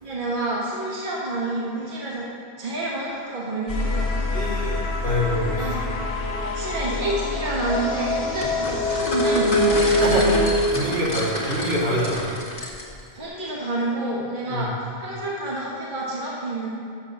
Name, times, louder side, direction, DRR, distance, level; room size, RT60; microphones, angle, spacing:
voice 1, 0.0-2.3 2.6-4.1 5.6-6.0 6.4-10.4 13.1-16.7, right 2 dB, 55° right, -5 dB, 1.5 m, -28 dB
sound 1, 3.7-10.7, left 2 dB, 70° left, 1.4 m, -24 dB
voice 2, 4.3-5.8 9.9-12.3 14.5-14.7, equal, 80° right, -6 dB, 2.1 m, -26 dB
sound 2, 8.4-13.1, left 1 dB, 45° left, 1.3 m, -31 dB
6.9 x 6.9 x 6.9 m, 2.3 s
omnidirectional pair, 1.0 m